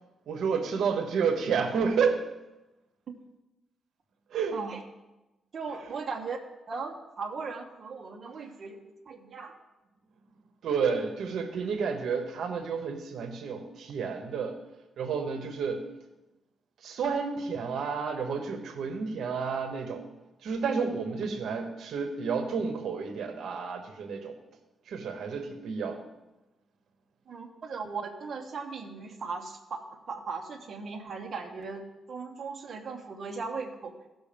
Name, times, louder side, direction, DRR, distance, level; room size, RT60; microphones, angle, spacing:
voice 1, 0.3-2.2 4.3-4.6 10.6-14.5 15.0-15.8 16.8-20.0 20.4-24.3 24.9-26.0, right 5 dB, 65° right, 6 dB, 1.1 m, -30 dB
voice 2, 5.5-6.4 6.7-9.6 27.3-31.8 32.1-33.9, right 4 dB, 40° right, 0 dB, 1.1 m, -38 dB
16.0 x 6.3 x 5.1 m, 1.0 s
wide cardioid pair, 175°, 0 cm